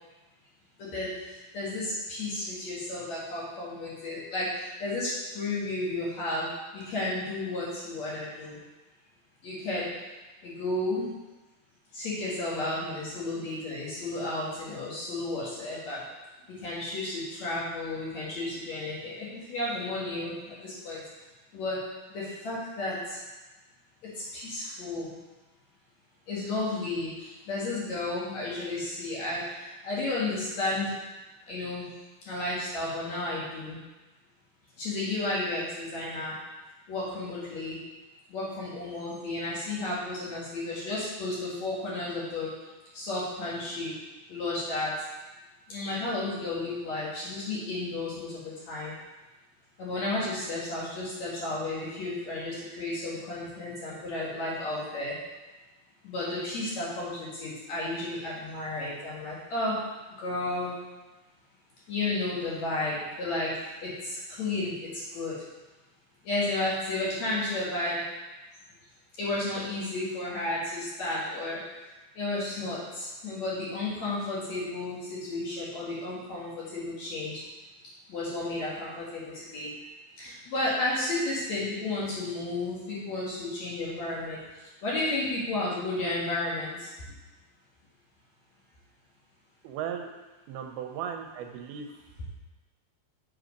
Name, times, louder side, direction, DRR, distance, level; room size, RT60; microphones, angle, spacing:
voice 1, 1.5-6.5 6.7-8.6 9.4-9.9 10.4-11.1 11.9-16.0 16.6-21.0 21.5-21.8 22.1-23.2 24.3-25.1 26.3-30.9 31.5-31.9 32.3-33.8 34.8-36.3 36.9-37.8 38.3-42.5 42.9-43.9 44.3-44.9 45.7-48.9 49.8-55.1 56.0-59.8 60.2-60.8 61.9-65.3 66.2-68.0 69.2-71.6 72.2-77.4 78.1-79.7 80.2-84.4 84.8-86.9, left 2 dB, 50° left, -7 dB, 2.7 m, -32 dB
voice 2, 89.6-90.1 90.5-91.9, right 8 dB, 80° right, 4 dB, 2.5 m, -36 dB
7.8 x 4.9 x 5.1 m, 1.1 s
omnidirectional pair, 4.5 m